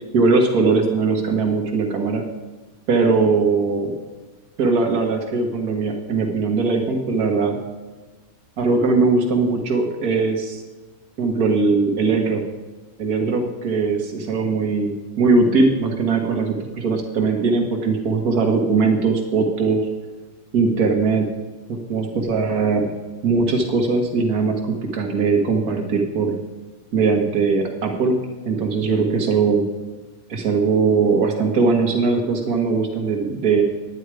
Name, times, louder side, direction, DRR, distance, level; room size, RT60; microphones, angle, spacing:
voice 1, 0.1-2.2 2.9-3.9 4.6-7.6 8.6-10.6 11.2-12.4 13.0-19.8 20.5-21.3 21.7-22.9 23.2-26.4 26.9-28.2 28.5-29.7 30.3-33.6, right 4 dB, 85° right, 2 dB, 1.8 m, -20 dB
10.0 x 9.6 x 4.8 m, 1.2 s
omnidirectional pair, 1.5 m